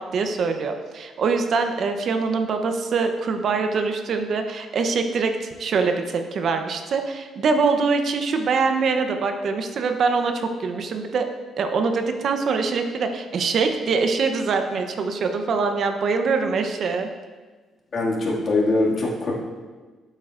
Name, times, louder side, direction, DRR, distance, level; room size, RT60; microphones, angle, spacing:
voice 1, 0.0-11.3 11.6-17.1, right 4 dB, 60° right, 6 dB, 0.7 m, -23 dB
voice 2, 17.9-19.3, left 2 dB, 50° left, -3 dB, 2.1 m, -22 dB
9.3 x 7.5 x 2.5 m, 1.4 s
cardioid pair, 90°, 0 cm